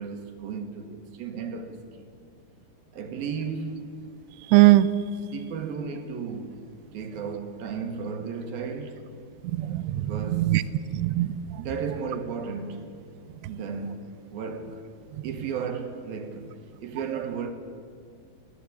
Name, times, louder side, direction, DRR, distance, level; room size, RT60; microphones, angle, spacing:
voice 1, 0.0-2.1 2.9-3.8 5.3-6.7 6.9-9.1 9.9-10.6 11.6-13.0 13.5-14.8 15.2-16.5 16.8-17.5, right 5 dB, 65° right, 3.1 m, -34 dB
voice 2, 4.5-4.9 9.5-10.6 10.9-11.6, right 17 dB, 80° right, 2.6 m, -20 dB
22.0 x 15.5 x 8.5 m
omnidirectional pair, 4.9 m